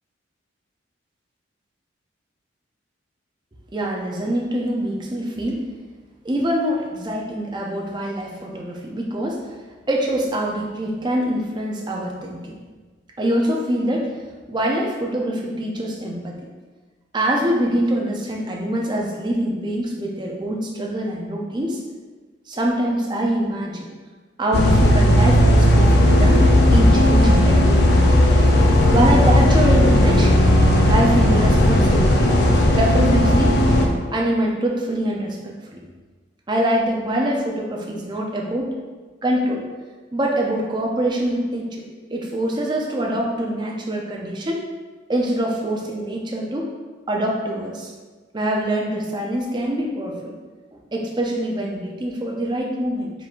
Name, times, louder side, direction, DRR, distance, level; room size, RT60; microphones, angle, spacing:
voice 1, 3.7-5.7 6.2-9.5 9.9-12.6 13.2-14.2 14.5-16.5 17.1-21.8 22.5-23.9 24.4-26.5 26.7-28.1 28.9-30.4 30.9-33.6 34.1-35.8 36.5-38.7 39.2-39.6 40.1-41.8 42.1-44.7 45.1-46.7 47.1-47.9 48.3-50.3 50.7-53.1, right 1 dB, 25° right, -1 dB, 0.5 m, -24 dB
sound 1, 24.5-33.9, left 1 dB, 55° left, 0.5 m, -15 dB
4.6 x 3.6 x 2.5 m, 1.4 s
head